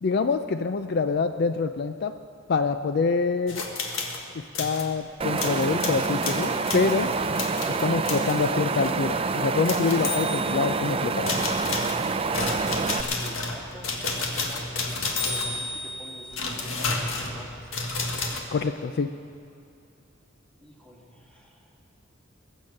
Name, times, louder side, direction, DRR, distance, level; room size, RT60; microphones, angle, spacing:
voice 1, 0.0-2.1 2.5-3.6 4.6-7.1 7.8-11.3 18.5-19.1, left 4 dB, 55° left, 9 dB, 0.4 m, -25 dB
sound 1, 3.5-4.2 4.5-4.9 5.4-8.4 8.9-9.0 9.7-10.8 11.3-18.4, left 3 dB, 90° left, 1.7 m, -31 dB
Wind, 5.2-13.0, right 4 dB, 30° right, 0.5 m, -27 dB
voice 2, 12.6-14.9 15.2-17.7 20.6-21.8, equal, 5° left, -2 dB, 2.1 m, -47 dB
21.5 x 7.3 x 6.5 m, 2.6 s
head